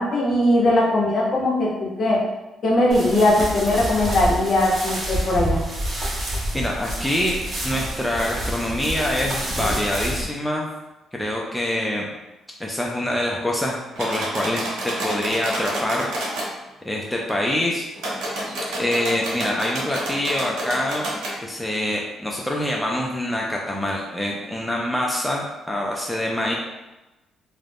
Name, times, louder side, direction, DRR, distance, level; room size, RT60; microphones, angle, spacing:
voice 1, 0.0-2.2 2.6-5.6, left 1 dB, 50° left, -4 dB, 0.8 m, -20 dB
sound 1, 2.9-10.2, right 1 dB, 40° right, 0.7 m, -28 dB
voice 2, 6.5-10.7 11.2-12.1 12.6-16.4 16.8-17.8 18.8-21.1 21.4-26.5, left 1 dB, 5° left, -2 dB, 0.4 m, -25 dB
sound 2, 14.0-16.5 18.0-21.4, right 1 dB, 85° right, 0.8 m, -29 dB
2.4 x 2.1 x 3.3 m, 1.0 s
cardioid pair, 95°, 0 cm